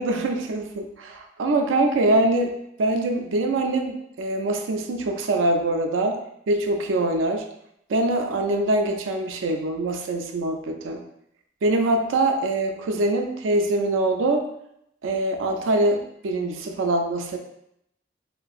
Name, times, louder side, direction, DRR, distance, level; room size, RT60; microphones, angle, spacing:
voice 1, 0.0-2.5 2.8-6.2 6.5-7.5 7.9-11.0 11.6-14.4 15.0-17.4, right 2 dB, 85° right, 4 dB, 0.4 m, -23 dB
2.9 x 2.5 x 2.3 m, 0.76 s
head